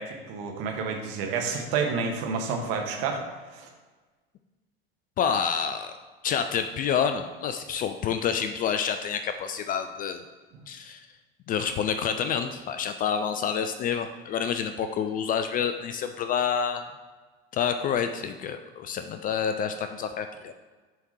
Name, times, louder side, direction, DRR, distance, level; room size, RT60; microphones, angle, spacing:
voice 1, 0.0-3.2 3.5-3.7, right 5 dB, 50° right, 2 dB, 1.3 m, -29 dB
voice 2, 5.2-5.9 6.2-10.2 10.7-11.1 11.5-16.9 17.5-20.5, left 7 dB, 30° left, 8 dB, 0.4 m, -28 dB
10.5 x 3.6 x 3.1 m, 1.3 s
figure-of-eight pair, 75°, 30 cm